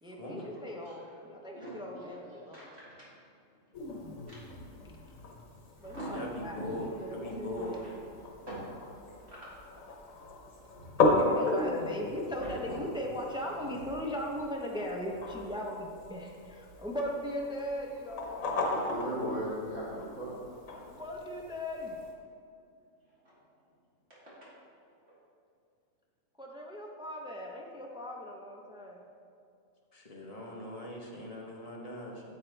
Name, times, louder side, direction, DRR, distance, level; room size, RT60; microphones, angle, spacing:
voice 1, 0.0-2.7 5.8-7.8 11.1-18.6 20.9-21.9 26.4-29.1, equal, 5° right, -1 dB, 0.7 m, -38 dB
voice 2, 1.5-2.1 2.5-2.9 4.3-4.4 5.8-6.7 7.7-8.0 8.5-8.6 9.3-9.4 10.8-10.9 12.4-12.8 18.6-20.3, equal, 50° right, -9 dB, 2.6 m, -39 dB
sound 1, 3.7-22.1, left 2 dB, 80° left, 1.5 m, -36 dB
voice 3, 6.1-7.8 29.9-32.2, left 1 dB, 30° left, -2 dB, 1.1 m, -40 dB
8.2 x 7.8 x 3.4 m, 2.5 s
omnidirectional pair, 1.4 m